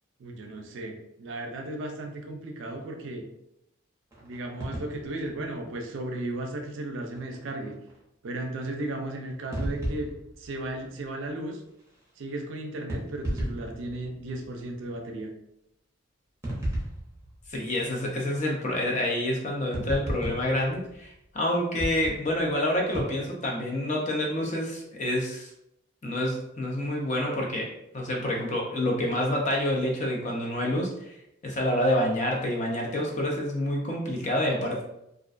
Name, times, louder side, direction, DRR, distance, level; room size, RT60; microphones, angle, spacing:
voice 1, 0.2-3.2 4.2-7.8 8.2-10.1 10.4-11.6 12.2-15.3, right 2 dB, 65° right, 3 dB, 0.4 m, -35 dB
sound 1, 4.1-6.4 6.8-6.9 7.1-7.4 7.7-8.0 8.4-8.5 9.5-11.3 11.6-12.2 12.9-14.8 16.4-18.3 19.7-21.4 21.7-23.1, right 1 dB, 15° right, 0.6 m, -36 dB
voice 2, 17.5-25.5 26.0-31.2 31.4-34.8, left 1 dB, 35° left, -1 dB, 0.5 m, -28 dB
2.4 x 2.1 x 2.4 m, 0.82 s
head